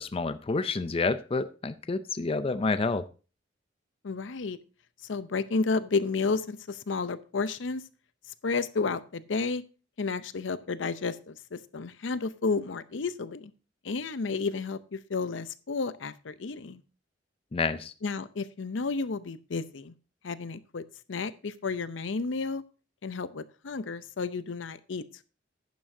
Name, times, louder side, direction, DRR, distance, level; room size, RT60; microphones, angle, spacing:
voice 1, 0.0-3.1 17.5-17.9, left 3 dB, 30° left, 12 dB, 0.4 m, -29 dB
voice 2, 4.0-4.6 5.0-7.8 8.4-9.6 10.0-13.5 13.8-16.8 18.0-19.9 20.2-22.6 23.0-25.2, left 4 dB, 75° left, 14 dB, 0.6 m, -32 dB
11.5 x 9.3 x 2.6 m, 0.34 s
head